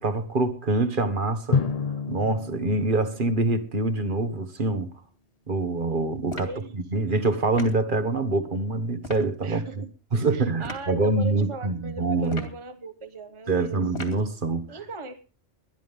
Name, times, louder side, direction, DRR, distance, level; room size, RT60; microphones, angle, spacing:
voice 1, 0.0-1.6 2.1-4.9 5.5-6.5 6.9-9.8 10.1-12.4 13.5-14.7, right 3 dB, 50° right, 1.7 m, -25 dB
Drum, 1.5-4.2, left 5 dB, 35° left, 0.9 m, -30 dB
sound 1, 6.3-6.6 7.5-7.8 9.0-9.3 10.6-10.9 12.2-12.6 13.9-14.3, left 2 dB, 70° left, 2.9 m, -38 dB
voice 2, 6.4-7.0 9.4-9.9 10.2-13.8 14.7-15.2, right 3 dB, 30° right, 1.1 m, -39 dB
21.5 x 12.5 x 3.6 m
omnidirectional pair, 1.1 m